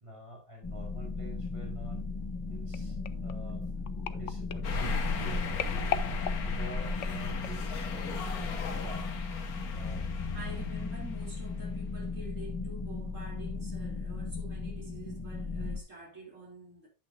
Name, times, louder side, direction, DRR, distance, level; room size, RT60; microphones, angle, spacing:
voice 1, 0.0-2.0 2.5-3.6 4.1-5.9 6.4-9.1 9.7-10.0, right 2 dB, 20° right, 4.2 m, -48 dB
sound 1, 0.6-15.8, left 4 dB, 15° left, 1.9 m, -37 dB
sound 2, 2.7-7.8 8.4-8.6 8.9-9.0, left 9 dB, 60° left, 1.0 m, -40 dB
sound 3, 4.6-12.0, left 4 dB, 80° left, 1.8 m, -36 dB
voice 2, 10.3-16.9, right 2 dB, 55° right, 3.8 m, -47 dB
10.5 x 9.0 x 2.6 m
omnidirectional pair, 1.6 m